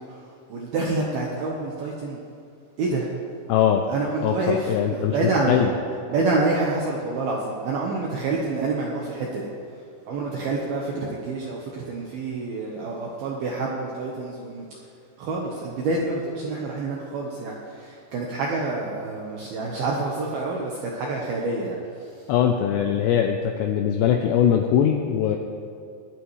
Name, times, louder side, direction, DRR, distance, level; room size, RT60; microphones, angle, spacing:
voice 1, 0.0-2.2 2.8-3.1 3.9-5.7 6.1-9.5 10.1-14.7 15.2-22.3, right 3 dB, 70° right, -2 dB, 2.4 m, -27 dB
voice 2, 3.5-3.9 4.2-5.2 5.5-5.7 22.3-25.4, left 9 dB, 85° left, 4 dB, 2.5 m, -21 dB
20.0 x 11.5 x 3.2 m, 2.4 s
omnidirectional pair, 5.6 m